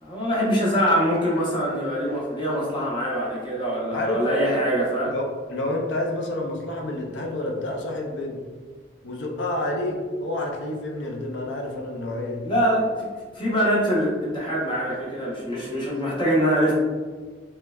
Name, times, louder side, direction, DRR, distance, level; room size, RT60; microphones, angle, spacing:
voice 1, 0.0-5.1 12.4-13.1 13.3-16.7, equal, 25° left, -5 dB, 0.8 m, -23 dB
voice 2, 3.9-4.3 5.1-8.4 9.0-12.5, left 1 dB, 80° left, 1 dB, 0.6 m, -29 dB
3.2 x 3.0 x 2.3 m, 1.5 s
head